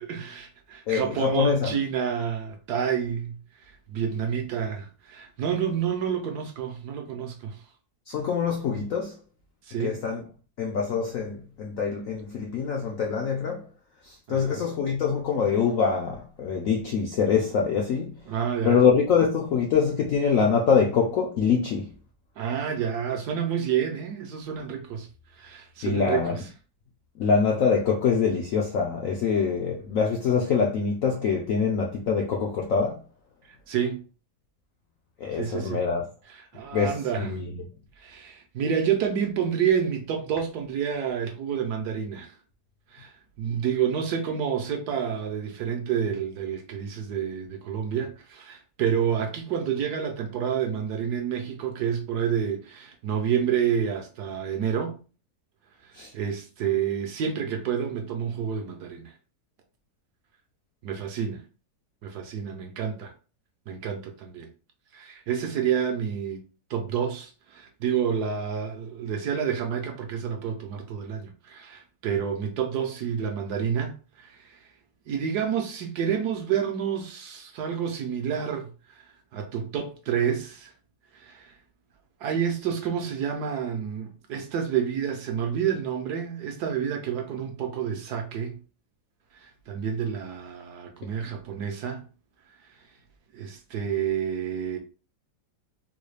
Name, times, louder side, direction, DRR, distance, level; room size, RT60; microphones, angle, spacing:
voice 1, 0.0-7.6 9.6-10.0 14.3-14.6 18.3-18.8 22.4-26.5 33.7-34.0 35.3-35.8 36.3-37.4 38.0-42.4 42.9-55.0 55.8-59.1 60.8-61.4 62.0-63.1 63.7-64.5 64.9-66.4 66.7-74.7 75.1-80.7 81.1-81.6 82.2-88.6 89.3-92.0 92.6-92.9 93.3-94.8, right 8 dB, 70° right, 1.1 m, -29 dB
voice 2, 0.9-1.7 8.1-9.2 9.8-10.2 10.6-13.6 14.3-18.1 18.6-21.9 25.8-26.4 27.2-33.0 35.2-36.0 36.7-37.4 56.0-56.1, left 6 dB, 75° left, 0.7 m, -24 dB
3.8 x 2.3 x 3.2 m
omnidirectional pair, 2.0 m